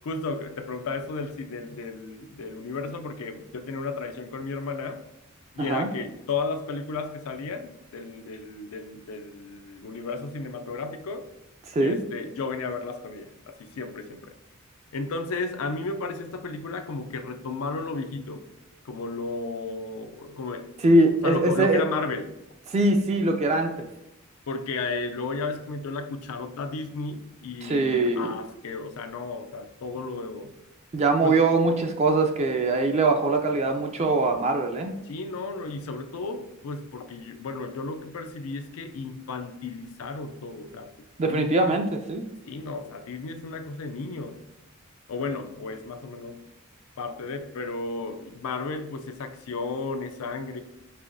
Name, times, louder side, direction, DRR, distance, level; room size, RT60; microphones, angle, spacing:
voice 1, 0.0-5.0 5.5-11.3 11.8-14.3 14.9-18.5 18.8-20.7 21.2-22.3 24.5-30.6 31.2-31.4 35.0-40.9 41.2-41.8 42.5-44.5 45.1-46.4 47.0-50.6, left 3 dB, 85° left, 0.4 m, -34 dB
voice 2, 5.6-5.9 11.7-12.0 20.8-21.8 22.7-23.9 27.6-28.3 30.9-34.9 41.2-42.2, right 2 dB, 30° right, 0.3 m, -22 dB
5.5 x 2.8 x 2.6 m
head